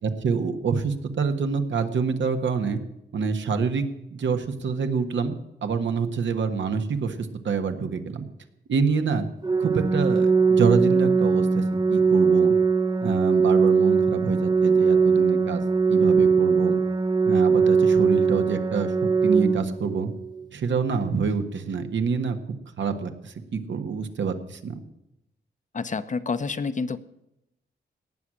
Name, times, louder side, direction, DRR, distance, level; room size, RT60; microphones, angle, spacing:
voice 1, 0.0-2.8 3.1-3.8 4.1-8.3 8.7-9.3 9.6-11.6 11.9-12.5 13.0-15.6 15.9-16.8 17.3-18.9 19.2-20.1 20.5-22.4 22.8-24.7, right 5 dB, 80° right, 7 dB, 1.5 m, -26 dB
Organ, 9.4-20.4, right 5 dB, 20° right, 0.8 m, -21 dB
voice 2, 25.7-27.0, left 4 dB, 40° left, 12 dB, 0.8 m, -28 dB
18.0 x 6.5 x 9.9 m, 0.86 s
wide cardioid pair, 105°, 19 cm